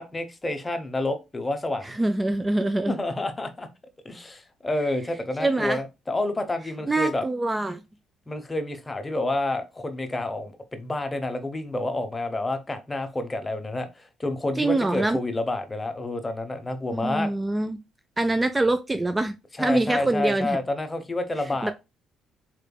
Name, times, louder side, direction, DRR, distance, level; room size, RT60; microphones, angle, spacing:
voice 1, 0.0-1.8 2.8-3.7 4.0-7.2 8.3-17.3 19.6-21.7, left 2 dB, 20° left, 0.9 m, -29 dB
voice 2, 1.8-3.0 5.4-5.8 6.9-7.8 14.6-15.2 16.9-17.8 18.2-20.6 21.6-21.7, right 2 dB, 20° right, 0.4 m, -24 dB
3.9 x 3.3 x 2.3 m
supercardioid pair, 65°, 0 cm